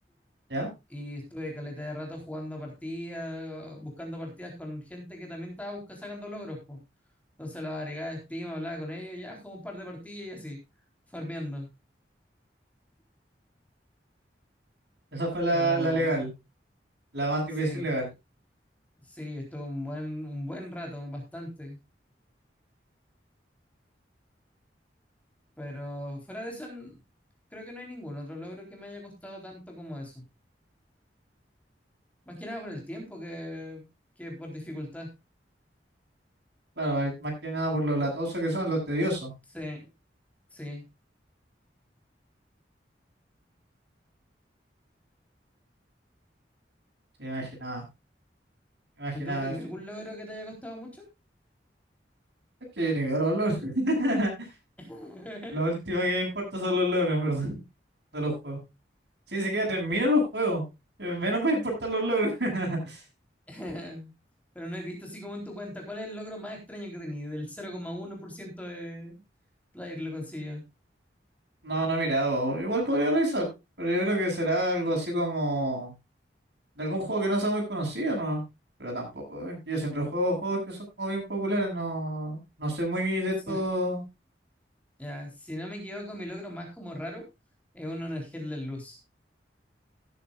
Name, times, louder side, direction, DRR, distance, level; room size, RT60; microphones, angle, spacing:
voice 1, 0.9-6.8 7.4-10.6 11.1-11.7 15.5-16.2 17.6-17.9 19.0-21.8 25.6-27.0 27.5-30.2 32.3-33.8 34.2-35.1 39.5-39.9 40.5-40.8 49.1-51.1 54.8-55.5 63.5-64.1 64.5-69.2 69.7-70.6 83.5-83.6 85.0-87.3 87.7-89.0, left 1 dB, 10° left, 0 dB, 3.9 m, -38 dB
voice 2, 15.1-16.3 17.1-18.1 36.8-39.3 47.2-47.8 49.0-49.5 52.8-54.3 55.5-57.6 58.1-58.6 59.3-60.6 61.0-63.0 71.6-73.5 73.8-75.9 76.8-78.4 78.8-84.0, right 1 dB, 70° right, 0 dB, 7.7 m, -28 dB
17.5 x 9.8 x 2.5 m, 0.25 s
head